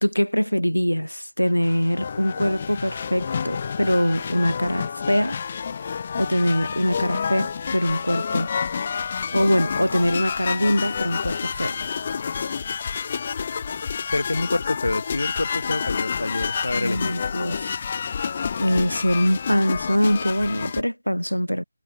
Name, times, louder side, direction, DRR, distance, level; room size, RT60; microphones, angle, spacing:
voice 1, 0.0-5.4 6.2-8.5 9.3-11.8 12.3-12.5 16.8-17.8 18.6-21.6, equal, 90° left, 1.1 m, -23 dB
sound 1, 1.5-20.8, left 6 dB, 35° left, 0.8 m, -29 dB
voice 2, 14.1-17.1, left 2 dB, 65° left, 2.0 m, -27 dB
figure-of-eight pair, 155°, 0 cm